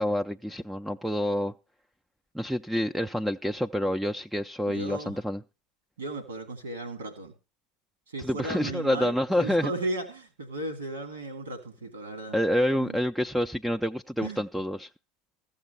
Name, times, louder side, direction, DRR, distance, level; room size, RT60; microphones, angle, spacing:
voice 1, 0.0-1.5 2.3-5.4 8.2-9.7 12.3-14.9, equal, ahead, 0.5 m, -28 dB
voice 2, 4.7-5.2 6.0-7.3 8.1-12.4 12.7-13.0 14.2-14.4, right 2 dB, 85° right, 2.5 m, -35 dB
14.5 x 7.1 x 5.4 m
figure-of-eight pair, 80°, 0 cm